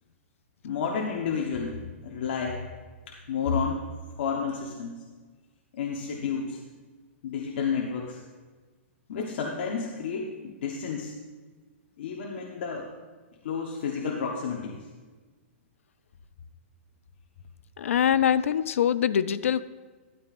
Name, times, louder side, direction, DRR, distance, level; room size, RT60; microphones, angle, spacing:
voice 1, 0.6-2.6 3.1-3.9 4.2-5.1 5.7-6.6 7.2-8.2 9.1-11.1 12.0-12.9 13.4-14.9, left 6 dB, 60° left, 0 dB, 1.1 m, -31 dB
voice 2, 17.8-19.6, left 9 dB, 85° left, 15 dB, 0.4 m, -23 dB
12.5 x 11.0 x 2.5 m, 1.3 s
hypercardioid pair, 160°, 7 cm